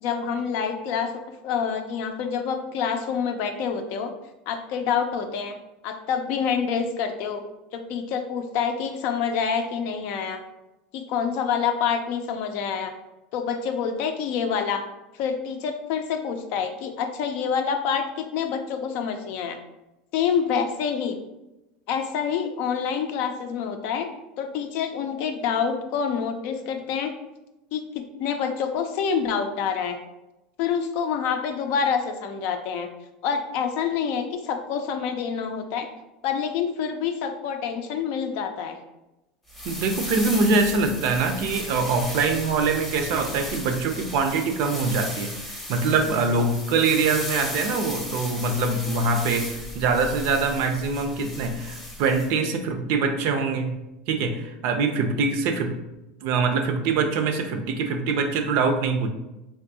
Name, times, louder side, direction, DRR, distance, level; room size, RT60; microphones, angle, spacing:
voice 1, 0.0-1.1 1.4-4.1 4.5-5.5 5.8-7.4 7.7-10.4 10.9-12.9 13.3-14.8 15.2-19.6 20.1-21.2 21.9-24.1 24.4-27.1 27.7-27.8 28.2-30.0 30.6-32.9 33.2-35.9 36.2-38.8, left 7 dB, 60° left, 6 dB, 0.4 m, -27 dB
sound 1, 39.5-52.3, left 1 dB, ahead, 0.7 m, -35 dB
voice 2, 39.6-53.7 54.1-55.8 56.2-59.1, right 4 dB, 60° right, 6 dB, 0.5 m, -24 dB
3.5 x 2.6 x 2.7 m, 0.96 s
supercardioid pair, 125°, 4 cm